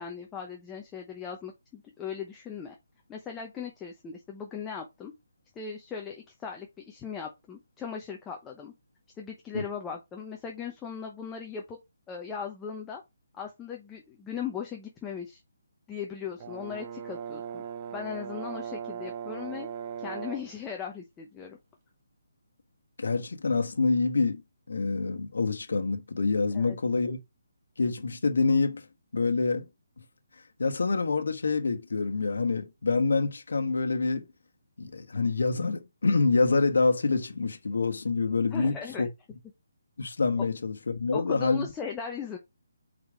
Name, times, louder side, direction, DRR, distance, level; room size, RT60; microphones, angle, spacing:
voice 1, 0.0-2.8 3.1-5.1 5.5-8.7 9.2-11.8 12.1-13.0 13.3-15.4 15.9-17.6 17.9-19.7 20.0-21.6 26.5-26.8 38.5-39.1 40.4-40.5 41.1-42.4, left 7 dB, 10° left, 0.8 m, -38 dB
Brass instrument, 16.4-20.6, right 8 dB, 25° right, 0.8 m, -38 dB
voice 2, 23.0-24.4 24.7-27.2 27.8-28.9 29.1-29.7 30.6-34.3 34.8-39.1 40.0-41.7, left 4 dB, 80° left, 1.2 m, -26 dB
4.9 x 4.1 x 5.0 m
hypercardioid pair, 165°, 0 cm